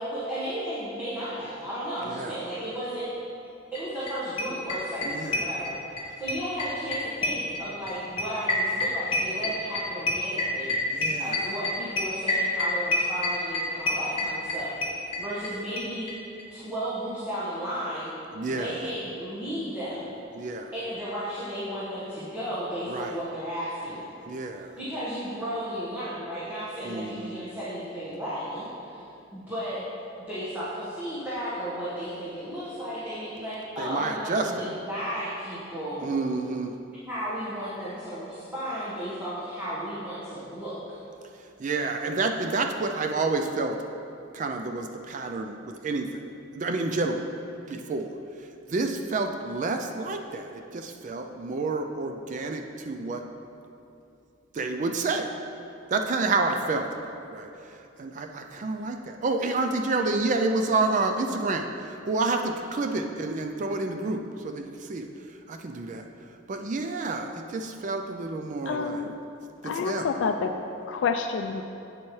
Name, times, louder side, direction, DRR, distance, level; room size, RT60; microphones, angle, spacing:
voice 1, 0.0-3.1 3.7-10.8 11.2-16.1 16.5-18.1 18.5-20.1 20.7-24.1 24.8-29.1 29.3-29.8 30.3-36.1 37.0-41.0, equal, 10° right, -12 dB, 1.3 m, -34 dB
sound 1, 3.7-3.8 4.1-4.2 4.4-6.0 6.3-15.5 15.8-16.1 16.4-16.5, left 2 dB, 30° left, 1.0 m, -27 dB
voice 2, 5.0-5.4 10.9-11.4 18.3-18.8 20.4-20.7 22.9-23.2 24.3-24.7 26.8-27.4 33.8-34.7 36.0-36.8 41.6-43.8 44.3-47.2 47.7-48.1 48.7-53.2 54.5-55.3 55.9-56.9 57.3-57.5 58.0-65.1 65.5-66.0 66.5-69.1 69.8-70.1, right 3 dB, 40° right, 5 dB, 0.4 m, -29 dB
voice 3, 68.7-69.1 69.6-70.5 70.9-71.6, left 5 dB, 70° left, 6 dB, 0.3 m, -28 dB
8.4 x 7.3 x 3.1 m, 2.7 s
head